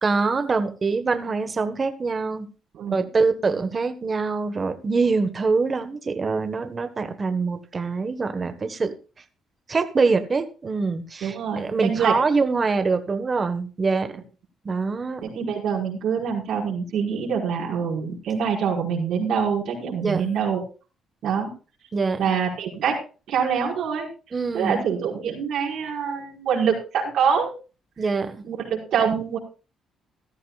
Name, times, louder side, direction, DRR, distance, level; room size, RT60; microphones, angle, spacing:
voice 1, 0.0-2.5 2.9-8.9 9.7-14.1 14.6-15.4 20.0-20.2 21.9-22.2 24.3-24.8 28.0-28.4, right 4 dB, 35° right, 8 dB, 1.4 m, -24 dB
voice 2, 11.2-12.2 15.2-20.6 21.2-21.5 22.2-23.0 23.3-24.1 24.5-27.5 28.4-29.4, right 7 dB, 70° right, -1 dB, 5.1 m, -25 dB
15.5 x 13.5 x 2.4 m, 0.35 s
cardioid pair, 95°, 0 cm